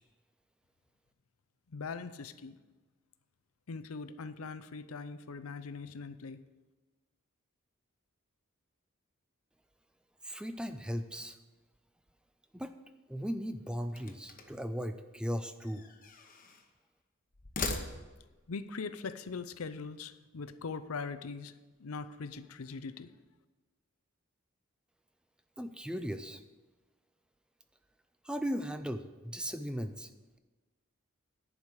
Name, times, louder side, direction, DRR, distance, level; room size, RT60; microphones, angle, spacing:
voice 1, 1.7-2.6 3.7-6.4 18.5-23.1, left 4 dB, 80° left, 12 dB, 0.6 m, -41 dB
voice 2, 10.2-11.4 12.5-12.7 13.1-15.9 25.6-26.4 28.2-30.1, equal, 5° right, 9 dB, 0.4 m, -37 dB
sound 1, 14.0-14.7 15.6-16.7 17.3-18.4, left 3 dB, 40° left, 1.0 m, -40 dB
10.5 x 4.8 x 8.2 m, 1.2 s
head